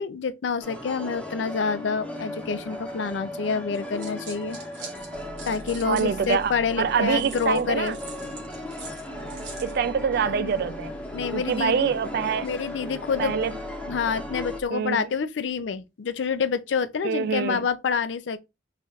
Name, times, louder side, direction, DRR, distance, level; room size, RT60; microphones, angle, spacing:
voice 1, 0.0-4.6 5.5-8.0 10.3-10.6 11.1-11.9 12.4-13.4 13.9-18.4, left 5 dB, 80° left, 0.4 m, -27 dB
sound 1, 0.6-14.6, left 1 dB, 5° left, 0.6 m, -37 dB
sound 2, 3.7-6.5 7.1-9.8, right 5 dB, 80° right, 1.2 m, -43 dB
sound 3, 5.1-14.7, left 1 dB, 40° right, 0.7 m, -44 dB
voice 2, 5.8-8.0 9.6-10.9 11.3-12.5 13.2-13.6 14.7-15.0 17.0-17.7, right 7 dB, 55° right, 0.3 m, -25 dB
3.2 x 2.4 x 4.0 m
head